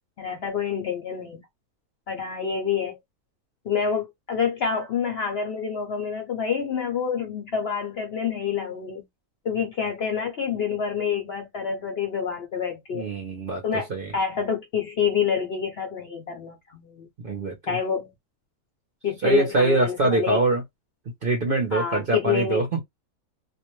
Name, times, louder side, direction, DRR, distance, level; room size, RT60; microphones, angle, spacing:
voice 1, 0.2-1.4 2.1-3.0 3.6-9.0 9.4-13.1 13.6-17.1 17.7-18.1 19.0-20.4 21.7-22.6, left 7 dB, 60° left, 0.7 m, -27 dB
voice 2, 12.9-14.1 17.2-17.8 19.2-20.6 21.2-22.8, right 2 dB, 50° right, 0.7 m, -24 dB
2.5 x 2.1 x 3.0 m
omnidirectional pair, 1.6 m